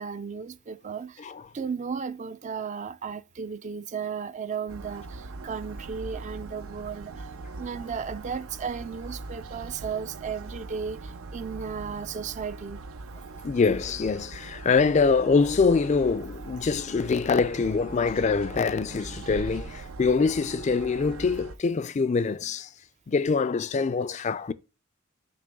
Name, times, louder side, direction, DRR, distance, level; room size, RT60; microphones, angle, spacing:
voice 1, 0.0-1.3 1.5-7.3 7.6-12.8, right 6 dB, 35° right, 0.4 m, -35 dB
sound 1, 4.7-21.6, right 3 dB, 85° right, 0.6 m, -41 dB
voice 2, 13.4-22.7 23.1-24.5, left 4 dB, 35° left, 0.3 m, -24 dB
6.9 x 3.0 x 5.2 m
head